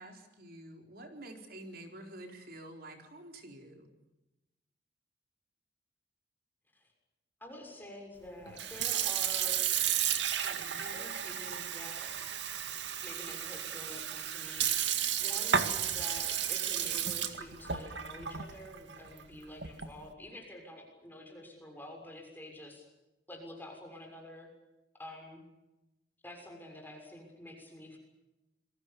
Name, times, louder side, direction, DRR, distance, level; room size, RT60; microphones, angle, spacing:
voice 1, 0.0-3.9, right 1 dB, 55° right, 4 dB, 4.4 m, -48 dB
voice 2, 7.4-9.6 10.4-12.1 13.0-22.8 23.3-24.5 25.0-25.4 26.2-28.0, left 1 dB, 10° left, 2 dB, 6.5 m, -48 dB
Sink (filling or washing) / Fill (with liquid), 8.5-20.0, right 9 dB, 75° right, 2.1 m, -33 dB
28.0 x 22.5 x 7.0 m, 0.99 s
head